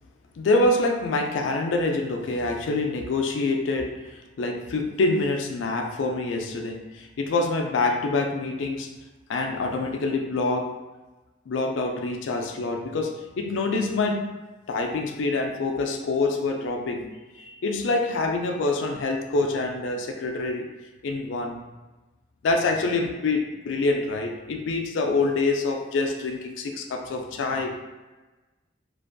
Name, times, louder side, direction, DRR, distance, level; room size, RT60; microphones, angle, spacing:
voice 1, 0.3-8.9 9.3-10.7 11.5-14.3 14.7-17.1 17.4-20.7 21.0-21.6 22.4-27.8, left 3 dB, 85° left, 3 dB, 0.4 m, -26 dB
2.5 x 2.2 x 2.5 m, 1.2 s
head